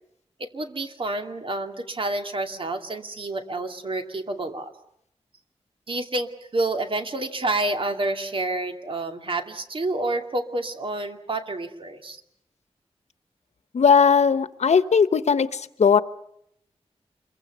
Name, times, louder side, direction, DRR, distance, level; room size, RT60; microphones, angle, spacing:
voice 1, 0.4-4.7 5.9-12.2, right 2 dB, 50° right, 6 dB, 2.4 m, -29 dB
voice 2, 13.7-16.0, left 6 dB, 85° left, 14 dB, 1.0 m, -18 dB
27.0 x 23.0 x 6.7 m, 0.75 s
wide cardioid pair, 115°, 11 cm